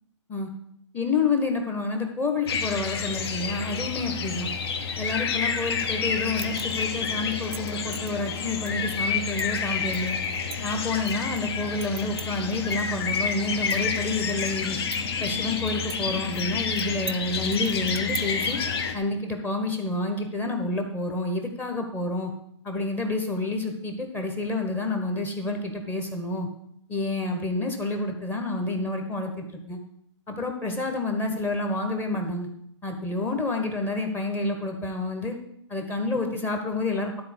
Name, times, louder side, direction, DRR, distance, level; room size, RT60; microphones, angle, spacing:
voice 1, 0.9-4.5 5.0-10.2 10.6-14.8 15.2-18.6 18.9-22.3 22.6-26.5 26.9-29.8 30.3-32.5 32.8-35.4 35.7-37.2, left 3 dB, 10° left, 3 dB, 1.1 m, -29 dB
sound 1, 2.5-19.0, left 6 dB, 55° left, 1.4 m, -29 dB
sound 2, 6.4-6.9 7.3-8.1 8.7-8.8 9.4-9.6 9.9-11.4 11.8-12.8 13.1-13.2 13.5-14.5 14.9-16.0 16.2-16.3 16.8-17.2 17.5-18.5, right 10 dB, 50° right, 0.5 m, -39 dB
11.5 x 4.3 x 8.0 m, 0.73 s
hypercardioid pair, 150°, 16 cm